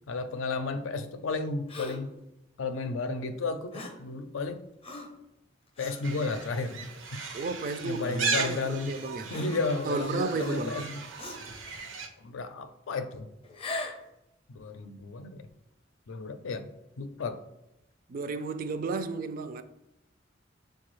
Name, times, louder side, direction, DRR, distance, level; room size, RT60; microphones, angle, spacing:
voice 1, 0.1-2.2 2.6-4.7 5.8-7.2 7.9-9.0 9.3-11.0 12.2-13.3 14.5-15.5 16.1-16.7 17.0-17.4, left 3 dB, 85° left, 0.5 m, -33 dB
Gasp, 1.7-2.1 3.7-4.1 4.8-5.2 5.8-6.0 6.7-6.9 8.0-8.1 9.3-9.9 10.3-10.8 11.2-11.5 13.4-14.1, left 2 dB, 30° left, 0.5 m, -39 dB
sound 1, 6.0-12.1, right 4 dB, 80° right, 0.6 m, -36 dB
voice 2, 7.3-9.3 9.8-10.8 18.1-19.6, right 3 dB, 45° right, 0.3 m, -33 dB
6.7 x 2.3 x 3.0 m
head